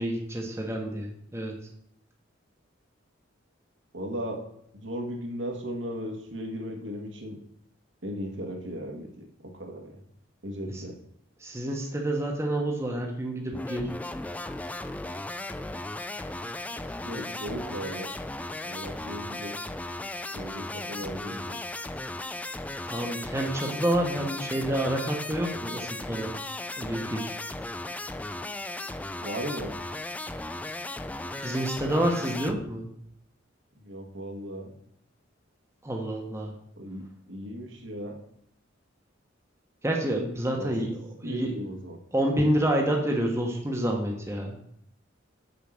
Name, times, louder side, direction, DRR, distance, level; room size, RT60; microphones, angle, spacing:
voice 1, 0.0-1.5 10.7-10.8 11.4-13.9 21.0-21.1 22.8-26.3 26.8-27.3 31.4-32.9 35.8-36.5 39.8-41.5 42.1-44.6, right 1 dB, 15° right, 0 dB, 1.2 m, -28 dB
voice 2, 3.9-4.4 4.7-7.4 8.0-9.9 10.4-11.0 16.7-18.1 18.6-19.6 20.3-21.6 29.2-29.7 33.7-34.7 36.8-38.2 40.6-40.9 41.2-42.0, equal, 70° right, 2 dB, 1.7 m, -36 dB
sound 1, 13.5-32.5, left 2 dB, 10° left, 0.3 m, -36 dB
6.9 x 5.7 x 6.5 m, 0.70 s
head